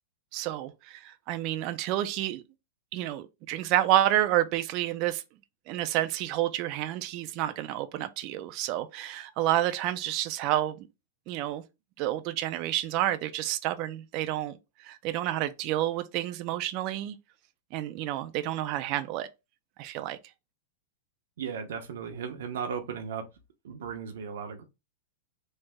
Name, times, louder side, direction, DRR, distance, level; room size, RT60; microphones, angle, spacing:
voice 1, 0.3-2.4 2.9-5.2 5.7-10.9 11.3-11.6 12.0-14.6 14.8-17.2 17.7-19.3 19.8-20.2, right 13 dB, 40° right, 0.3 m, -29 dB
voice 2, 21.4-23.2 23.6-24.6, right 7 dB, 75° right, 0.7 m, -36 dB
3.2 x 2.0 x 3.4 m
supercardioid pair, 150°, 0 cm